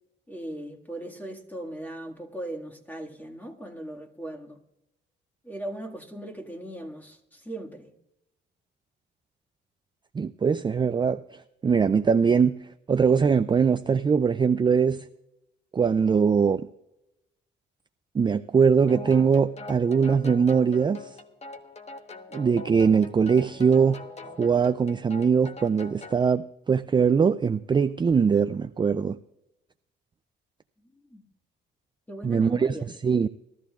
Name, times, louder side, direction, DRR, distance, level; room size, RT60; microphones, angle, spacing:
voice 1, 0.3-4.6 5.4-7.9 30.9-31.2 32.1-32.9, right 1 dB, 10° left, 1.9 m, -38 dB
voice 2, 10.1-15.1 15.7-16.7 18.1-21.2 22.3-24.0 24.4-29.2 32.2-32.8 33.0-33.3, right 6 dB, 25° right, 0.4 m, -22 dB
sound 1, 18.9-26.3, left 3 dB, 35° left, 1.1 m, -43 dB
20.0 x 13.5 x 2.4 m
cardioid pair, 90°, 20 cm